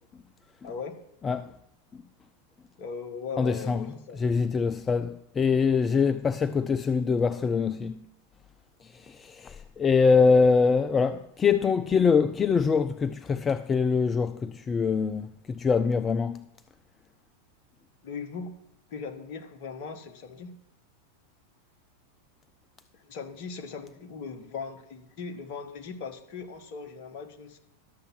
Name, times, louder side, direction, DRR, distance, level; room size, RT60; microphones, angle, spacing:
voice 1, 0.6-1.0 2.8-4.2 18.0-18.5 18.9-20.6 22.9-27.6, left 5 dB, 45° left, 1.4 m, -39 dB
voice 2, 1.2-1.5 1.9-2.0 3.4-8.1 8.8-16.5, left 5 dB, 20° left, 0.3 m, -24 dB
12.0 x 6.8 x 6.1 m
figure-of-eight pair, 90°, 0 cm